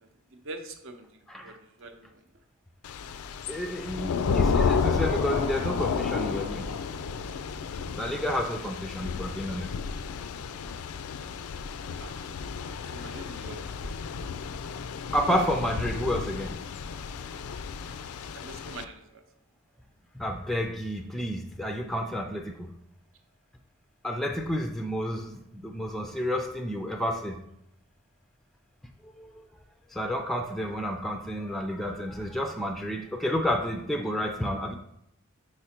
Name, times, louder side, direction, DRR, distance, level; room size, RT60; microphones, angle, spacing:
voice 1, 0.0-2.2 11.9-12.4 12.9-14.0 18.3-19.2, right 2 dB, 65° right, 6 dB, 0.7 m, -44 dB
Thunder / Rain, 2.8-18.9, left 5 dB, 85° left, 0.4 m, -31 dB
voice 2, 3.5-6.7 8.0-9.7 15.1-16.5 20.1-22.7 24.0-27.4 29.0-29.5 29.9-34.7, equal, ahead, 4 dB, 0.3 m, -30 dB
5.0 x 4.8 x 4.3 m, 0.77 s
head